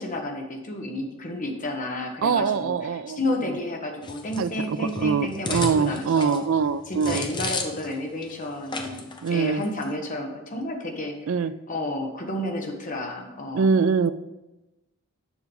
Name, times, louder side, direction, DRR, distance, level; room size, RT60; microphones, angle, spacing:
voice 1, 0.0-6.4 6.9-11.2 11.7-13.7, left 1 dB, 35° left, 3 dB, 1.1 m, -31 dB
voice 2, 2.2-3.2 4.4-7.2 9.2-9.6 11.3-11.5 13.5-14.1, right 5 dB, 65° right, 14 dB, 0.4 m, -23 dB
sound 1, 4.0-8.0 8.2-8.3 8.7-9.3 9.6-9.8, left 3 dB, 20° left, 0.7 m, -33 dB
7.1 x 5.8 x 5.3 m, 1.0 s
head